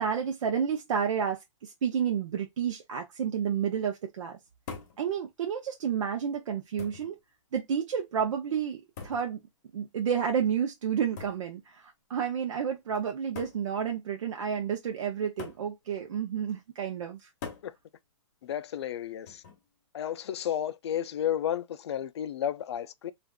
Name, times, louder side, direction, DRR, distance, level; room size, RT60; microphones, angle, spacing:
voice 1, 0.0-4.4 5.0-7.2 7.5-9.4 9.7-17.3, right 7 dB, 75° right, 0.7 m, -30 dB
sound 1, 4.7-5.0 6.0-6.1 6.8-7.2 9.0-9.3 11.2-11.5 12.5-12.6 13.4-13.7 15.4-15.7 17.4-17.7 19.3-19.7, left 5 dB, 35° left, 0.8 m, -42 dB
voice 2, 18.4-19.4 19.9-23.1, left 10 dB, 55° left, 0.4 m, -32 dB
3.4 x 2.5 x 2.3 m
hypercardioid pair, 180°, 16 cm